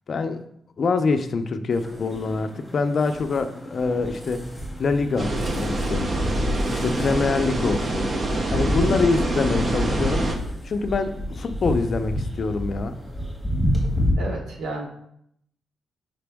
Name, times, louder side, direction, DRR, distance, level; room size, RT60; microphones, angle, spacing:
voice 1, 0.1-0.4 0.8-4.4 4.8-6.1 6.7-8.1 8.5-10.3 10.6-13.0, left 4 dB, 45° left, 9 dB, 0.5 m, -25 dB
sound 1, 1.7-14.1, equal, ahead, 1.7 m, -30 dB
sound 2, 5.2-10.4, right 1 dB, 35° right, 0.8 m, -25 dB
voice 2, 14.2-14.8, right 3 dB, 85° right, 0 dB, 1.4 m, -31 dB
6.0 x 5.2 x 3.5 m, 0.72 s
cardioid pair, 135°, 0 cm